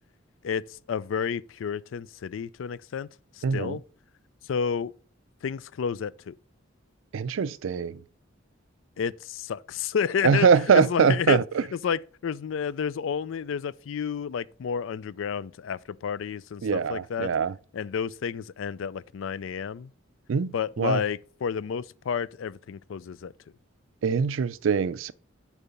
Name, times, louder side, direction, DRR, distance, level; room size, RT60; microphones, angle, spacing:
voice 1, 0.4-3.1 3.4-3.8 4.4-4.9 5.4-6.3 9.0-10.5 10.7-11.4 11.7-17.3 17.7-19.9 20.5-23.3, left 7 dB, 70° left, 0.4 m, -30 dB
voice 2, 3.4-3.8 7.1-8.0 10.2-11.4 16.6-17.5 20.3-21.0 24.0-25.1, right 6 dB, 70° right, 0.4 m, -23 dB
6.9 x 4.7 x 5.3 m
head